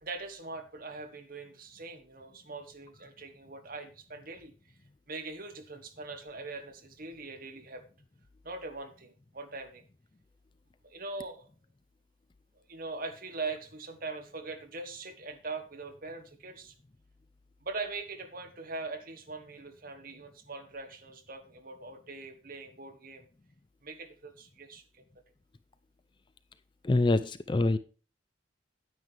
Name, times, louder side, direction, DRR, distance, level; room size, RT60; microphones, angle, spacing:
voice 1, 0.0-4.5 5.1-7.8 8.4-9.8 10.8-11.5 12.5-16.7 17.6-23.3 23.8-25.0, right 3 dB, 45° right, 7 dB, 1.3 m, -42 dB
voice 2, 26.8-27.8, left 2 dB, 25° left, 13 dB, 0.4 m, -25 dB
9.5 x 9.1 x 3.3 m, 0.35 s
head